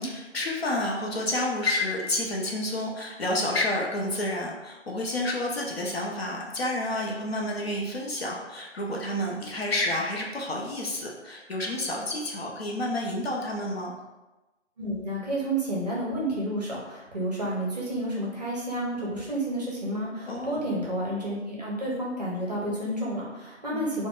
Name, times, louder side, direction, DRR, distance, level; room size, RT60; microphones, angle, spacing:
voice 1, 0.0-13.9 20.3-20.6 23.7-23.9, left 1 dB, 55° left, -2 dB, 0.6 m, -30 dB
voice 2, 14.8-24.1, right 1 dB, 35° right, -5 dB, 0.6 m, -30 dB
3.3 x 2.1 x 2.4 m, 1.1 s
figure-of-eight pair, 155°, 37 cm